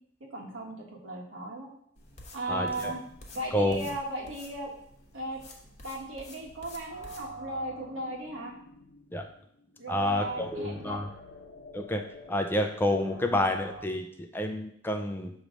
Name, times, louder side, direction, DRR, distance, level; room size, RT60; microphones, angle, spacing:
voice 1, 0.2-1.7 2.3-3.0 3.3-4.7 5.1-5.4 5.8-8.5 9.8-11.0, right 1 dB, 85° right, 0 dB, 1.4 m, -36 dB
sound 1, 2.0-7.3, left 2 dB, 35° left, 1.0 m, -50 dB
voice 2, 2.5-2.9 3.5-3.8 9.1-9.2 9.9-11.1 11.7-12.0 12.3-15.5, left 1 dB, 10° left, 5 dB, 0.4 m, -29 dB
sound 2, 6.9-13.9, right 1 dB, 65° left, 0.8 m, -47 dB
6.5 x 3.1 x 5.1 m, 0.68 s
head